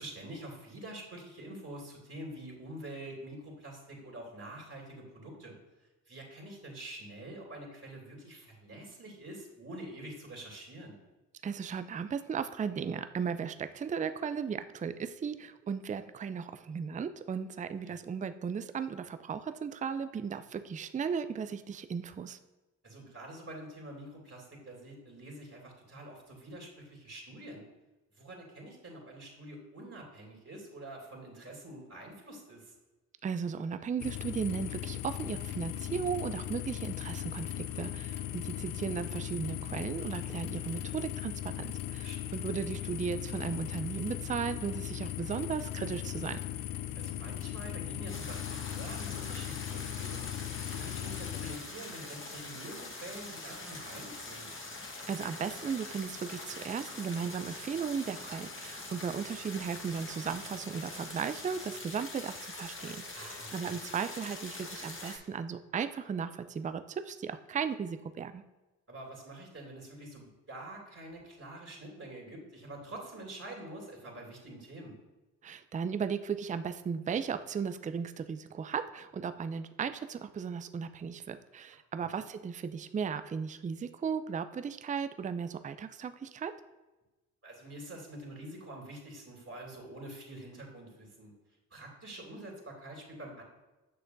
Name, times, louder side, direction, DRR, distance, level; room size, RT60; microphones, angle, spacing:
voice 1, 0.0-5.6 6.1-11.0 17.9-18.0 22.8-27.7 28.1-32.7 37.7-37.8 38.2-38.3 42.0-42.3 46.9-54.5 63.1-63.8 68.9-74.9 87.4-91.3 91.7-93.4, right 1 dB, 35° right, -1 dB, 2.6 m, -46 dB
voice 2, 11.4-22.4 33.2-46.4 55.1-68.4 75.4-86.5, right 6 dB, 20° right, 11 dB, 0.4 m, -36 dB
sound 1, 34.0-51.6, left 12 dB, 55° left, 0.5 m, -38 dB
sound 2, 48.1-65.2, left 2 dB, 30° left, 1.4 m, -44 dB
8.7 x 6.4 x 2.6 m, 1.1 s
hypercardioid pair, 45°, 42 cm